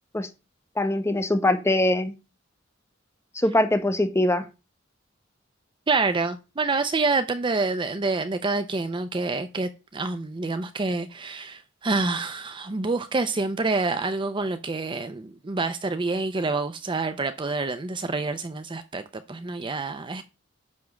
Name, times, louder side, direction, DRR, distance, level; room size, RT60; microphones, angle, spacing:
voice 1, 0.8-2.1 3.3-4.4, left 1 dB, 15° left, 1.0 m, -22 dB
voice 2, 5.9-19.0 19.3-20.2, right 3 dB, 25° right, 0.5 m, -27 dB
9.5 x 3.5 x 6.3 m
head